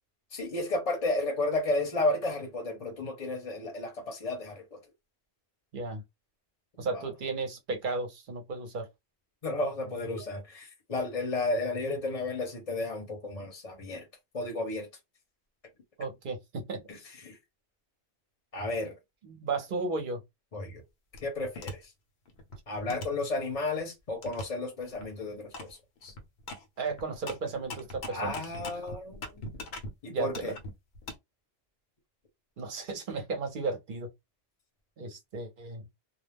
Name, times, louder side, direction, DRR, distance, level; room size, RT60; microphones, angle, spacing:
voice 1, 0.3-4.8 6.9-7.1 9.4-14.0 14.3-14.9 16.9-17.4 18.5-19.0 20.5-20.8 21.2-21.9 22.7-26.1 28.1-29.6 30.0-30.5, left 2 dB, 40° left, 0.8 m, -33 dB
voice 2, 6.8-8.9 10.1-10.3 16.0-16.8 19.2-20.2 26.8-28.4 30.1-30.5 32.6-34.1 35.0-35.8, right 3 dB, 55° right, 0.8 m, -34 dB
sound 1, 21.1-21.7 22.3-23.8 24.2-24.4 24.8-25.1 25.5-25.7 26.0-29.9 30.3-31.1, left 1 dB, 70° left, 0.9 m, -41 dB
2.3 x 2.0 x 3.3 m
omnidirectional pair, 1.2 m